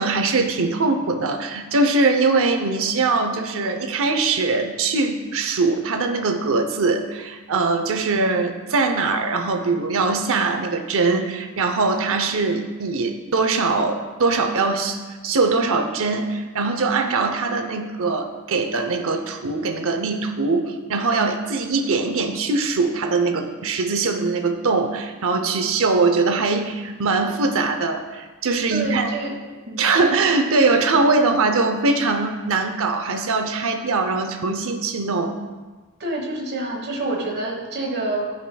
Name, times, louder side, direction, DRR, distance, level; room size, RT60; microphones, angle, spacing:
voice 1, 0.0-29.1 29.8-35.4, right 3 dB, 65° right, 5 dB, 0.7 m, -22 dB
voice 2, 28.7-29.4 29.7-29.9 36.0-38.3, right 2 dB, 50° right, 0 dB, 1.3 m, -27 dB
13.5 x 5.1 x 2.3 m, 1.3 s
head